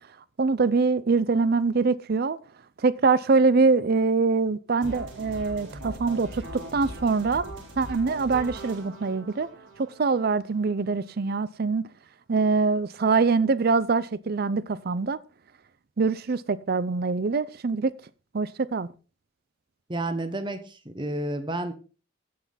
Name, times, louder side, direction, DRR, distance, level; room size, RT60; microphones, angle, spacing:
voice 1, 0.4-2.4 2.8-9.5 10.0-11.9 12.3-15.2 16.0-17.9 18.3-18.9, right 4 dB, 50° right, 0.5 m, -24 dB
sound 1, 4.8-10.8, right 1 dB, 85° right, 4.1 m, -40 dB
voice 2, 19.9-21.7, right 1 dB, 25° right, 1.3 m, -30 dB
16.5 x 5.8 x 4.0 m
head